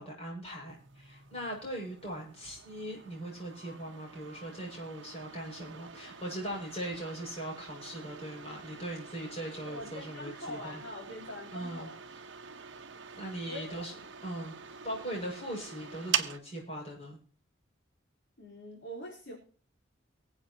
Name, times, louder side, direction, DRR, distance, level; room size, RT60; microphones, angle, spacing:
voice 1, 0.0-10.8 11.5-11.9 13.1-13.9 14.2-17.2, right 1 dB, 30° left, -1 dB, 6.7 m, -40 dB
sound 1, 0.7-16.4, right 8 dB, 65° right, 1.1 m, -43 dB
voice 2, 9.6-11.9 13.4-13.9 18.4-19.4, left 1 dB, 60° left, -4 dB, 4.4 m, -43 dB
24.0 x 8.2 x 3.0 m, 0.43 s
head